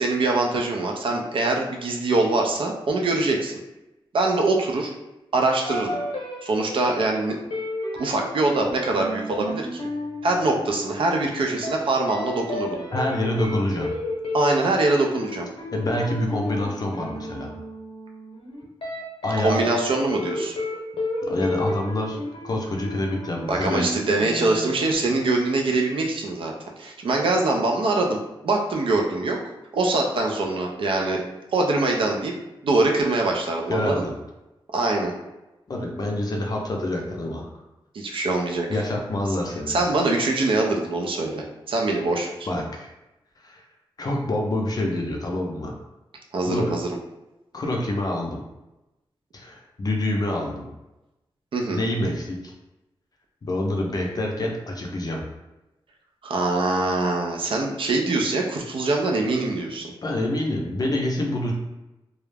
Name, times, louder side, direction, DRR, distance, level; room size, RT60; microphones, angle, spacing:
voice 1, 0.0-3.6 4.1-4.9 5.3-6.0 6.4-7.4 8.0-9.8 10.2-12.8 14.3-15.5 19.4-20.5 23.5-28.2 28.4-29.4 29.7-31.2 31.5-32.3 32.6-34.0 34.7-35.1 37.9-38.8 39.7-42.3 46.3-46.9 51.5-51.8 56.2-59.9, right 2 dB, 70° right, 1 dB, 0.4 m, -23 dB
sound 1, 5.7-11.2 11.6-11.8 12.1-24.9, left 2 dB, 80° left, 0.7 m, -32 dB
voice 2, 12.9-13.9 15.7-17.6 19.2-19.7 21.2-22.2 22.4-23.9 33.7-34.2 35.7-37.4 38.7-39.8 42.5-42.9 43.4-43.6 44.0-45.7 46.4-46.7 47.5-48.4 49.3-50.7 51.7-52.5 53.4-55.2 60.0-61.5, left 1 dB, 45° left, 0 dB, 0.5 m, -26 dB
2.3 x 2.0 x 3.2 m, 0.98 s
wide cardioid pair, 150°, 9 cm